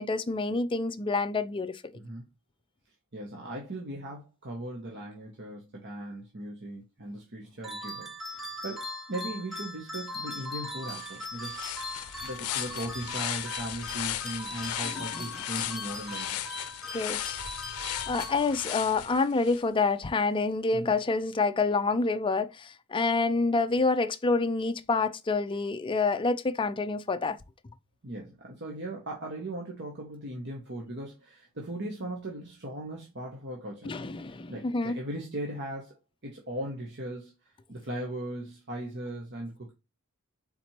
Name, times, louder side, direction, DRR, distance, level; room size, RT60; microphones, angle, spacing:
voice 1, 0.0-1.8 14.9-15.0 16.9-17.4 18.1-27.4 33.8-35.0, left 3 dB, 25° left, 0.4 m, -27 dB
voice 2, 1.9-2.2 3.1-11.6 12.2-16.4 20.7-20.9 28.0-34.0 34.5-36.0 36.2-39.7, right 1 dB, 55° right, 1.1 m, -38 dB
sound 1, 7.6-18.9, left 2 dB, ahead, 1.1 m, -39 dB
sound 2, 10.4-10.5 10.8-19.6, left 11 dB, 80° left, 0.5 m, -37 dB
4.4 x 4.2 x 2.9 m
head